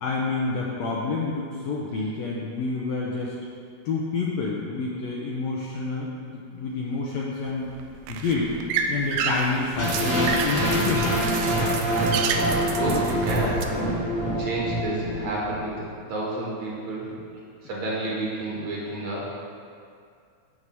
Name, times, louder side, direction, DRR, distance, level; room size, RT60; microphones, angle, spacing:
voice 1, 0.0-3.4 3.9-7.7 8.1-8.5 8.9-11.2, left 3 dB, 75° left, -4 dB, 1.7 m, -28 dB
sound 1, 7.4-13.6, right 6 dB, 85° right, 2.2 m, -31 dB
sound 2, 9.8-15.8, right 1 dB, 10° right, 1.0 m, -25 dB
voice 2, 12.5-14.0 14.4-17.1 17.6-19.2, right 1 dB, 60° right, -5 dB, 2.5 m, -30 dB
7.7 x 4.8 x 7.0 m, 2.3 s
omnidirectional pair, 3.8 m